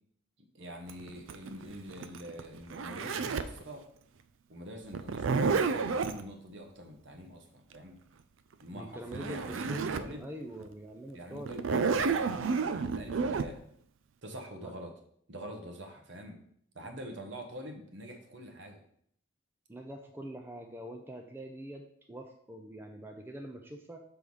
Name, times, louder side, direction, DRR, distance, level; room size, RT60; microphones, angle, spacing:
voice 1, 0.5-3.8 4.5-8.0 8.6-10.3 11.1-13.6 14.2-14.9 15.3-16.4 16.7-18.8, equal, 60° right, 3 dB, 1.0 m, -45 dB
Zipper (clothing), 0.9-3.6 4.9-6.2 8.8-8.9 9.1-10.1 10.6-10.7 11.5-13.5, right 5 dB, 75° right, 0.4 m, -30 dB
voice 2, 8.7-11.6 14.6-14.7 19.7-24.0, right 1 dB, 10° right, 3 dB, 0.5 m, -44 dB
6.2 x 3.4 x 5.4 m, 0.67 s
head